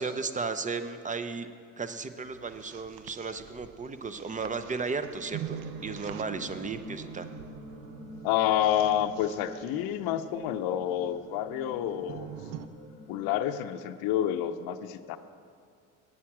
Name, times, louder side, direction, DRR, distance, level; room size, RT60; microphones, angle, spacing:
voice 1, 0.0-1.5 1.8-7.3, right 4 dB, 20° right, 11 dB, 0.6 m, -34 dB
sound 1, 2.3-12.7, right 9 dB, 80° right, 0.6 m, -45 dB
sound 2, 5.1-13.4, left 1 dB, 15° left, 1.8 m, -48 dB
voice 2, 8.2-12.3 13.1-15.2, left 11 dB, 65° left, 9 dB, 0.6 m, -29 dB
8.7 x 8.5 x 6.0 m, 2.3 s
hypercardioid pair, 75°, 39 cm